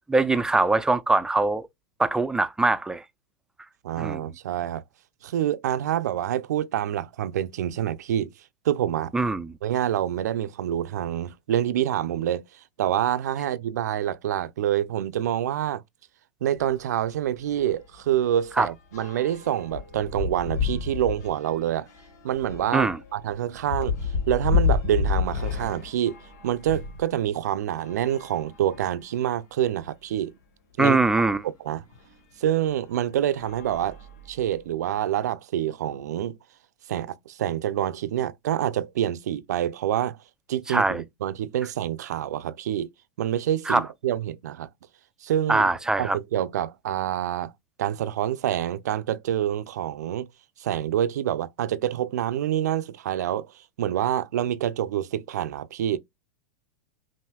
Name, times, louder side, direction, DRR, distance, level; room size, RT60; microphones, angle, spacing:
voice 1, 0.1-1.7 2.0-3.0 4.0-4.2 9.1-9.5 18.6-18.7 22.7-23.0 30.8-31.4 40.7-41.0 43.7-43.8 45.5-46.2, right 3 dB, 5° right, 0.4 m, -22 dB
voice 2, 3.8-4.8 5.2-8.3 8.6-9.1 9.6-12.4 12.8-15.8 16.4-21.9 22.2-24.0 24.3-26.2 26.4-30.3 30.8-31.8 32.4-34.0 34.3-36.4 36.9-40.2 40.5-42.9 43.2-44.7 45.2-45.7 46.0-47.5 47.8-50.3 50.6-53.5 53.8-56.0, right 11 dB, 80° right, 0.5 m, -27 dB
sound 1, 16.6-16.7 17.1-17.3 17.6-27.0 27.8-29.1 29.8-29.9 30.1-30.2 31.9-32.0 32.7-33.0 33.3-34.6, left 5 dB, 75° left, 1.3 m, -30 dB
5.6 x 2.6 x 2.2 m
hypercardioid pair, 115°, 9 cm